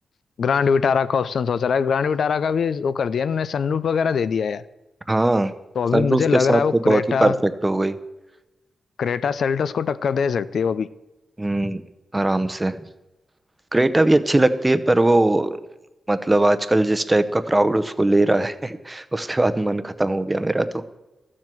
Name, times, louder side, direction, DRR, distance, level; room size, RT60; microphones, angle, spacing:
voice 1, 0.4-4.6 5.8-7.3 9.0-10.9, left 6 dB, 75° left, 0.5 m, -22 dB
voice 2, 5.1-5.5 5.9-6.2 6.5-8.0 11.4-11.8 12.1-12.8 13.7-15.6 16.1-20.7, right 2 dB, 15° right, 0.7 m, -20 dB
13.5 x 7.5 x 7.7 m
wide cardioid pair, 125°, 0 cm